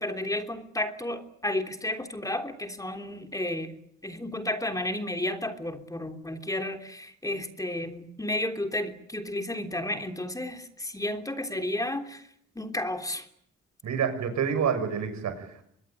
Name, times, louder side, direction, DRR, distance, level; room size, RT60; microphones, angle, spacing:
voice 1, 0.0-3.7 4.0-6.8 7.2-10.6 10.9-12.0 12.6-13.2, left 1 dB, 10° left, 6 dB, 3.3 m, -32 dB
voice 2, 13.8-15.7, right 7 dB, 70° right, 9 dB, 6.8 m, -28 dB
24.5 x 21.0 x 9.3 m, 0.70 s
cardioid pair, 90°, 30 cm